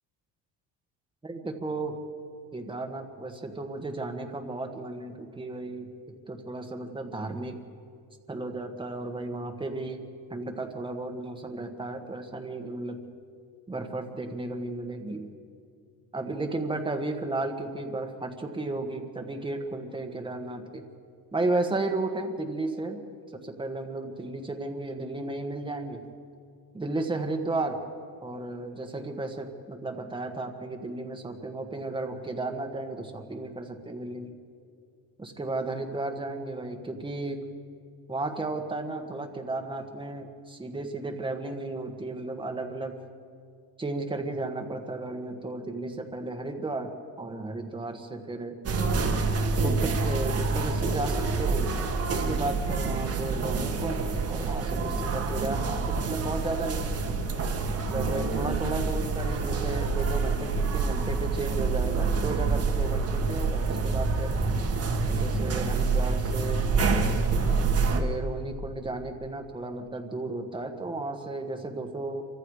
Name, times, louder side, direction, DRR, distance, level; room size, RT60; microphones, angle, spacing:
voice 1, 1.2-2.0 2.5-5.9 6.3-7.6 8.3-10.0 10.3-13.0 13.7-15.3 16.1-20.9 21.3-23.0 23.3-26.0 26.7-27.8 28.2-34.3 35.2-37.4 38.1-43.0 43.8-48.6 49.6-51.7 52.1-57.0 57.7-64.4 65.1-66.7 67.9-72.3, right 2 dB, 10° right, 4 dB, 1.6 m, -34 dB
sound 1, 48.6-68.0, right 4 dB, 35° right, 1.8 m, -27 dB
27.0 x 24.5 x 4.9 m, 2.3 s
cardioid pair, 160°, 41 cm